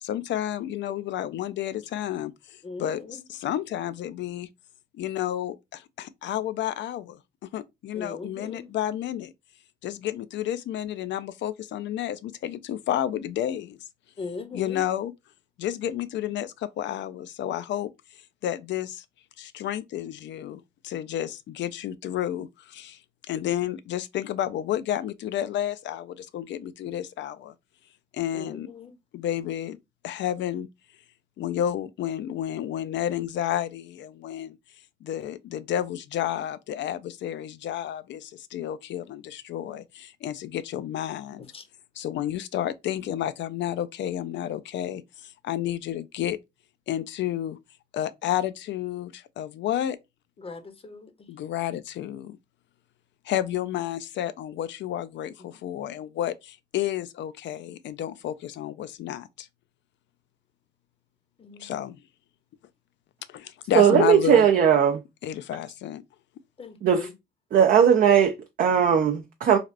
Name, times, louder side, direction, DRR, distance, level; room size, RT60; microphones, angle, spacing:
voice 1, 0.0-4.5 4.9-9.3 9.8-13.8 14.5-15.1 15.6-17.9 18.4-19.0 19.4-23.0 23.3-27.5 28.1-28.7 29.1-29.8 30.0-30.7 31.4-34.6 35.0-41.5 42.0-46.4 46.9-47.6 47.9-50.0 51.3-52.4 53.3-59.5 61.6-62.0 63.3-64.5 65.2-66.0, left 11 dB, 65° left, 0.4 m, -31 dB
voice 2, 2.6-3.2 7.9-8.7 14.2-14.8 28.3-28.9 41.5-41.6 50.4-51.1 61.4-61.7 66.6-67.1, left 4 dB, 30° left, 0.7 m, -39 dB
voice 3, 63.7-65.0 66.8-67.1 67.5-69.6, right 8 dB, 45° right, 0.4 m, -18 dB
3.3 x 2.4 x 2.4 m
cardioid pair, 90°, 20 cm